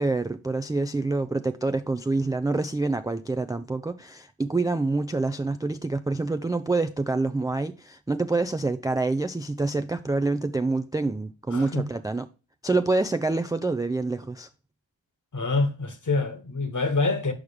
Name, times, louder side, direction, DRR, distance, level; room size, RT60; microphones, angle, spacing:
voice 1, 0.0-12.2 12.6-14.5, right 3 dB, 10° right, 0.3 m, -26 dB
voice 2, 11.5-11.9 15.3-17.3, left 3 dB, 40° left, 1.5 m, -26 dB
6.4 x 4.8 x 3.5 m
cardioid pair, 45°, 47 cm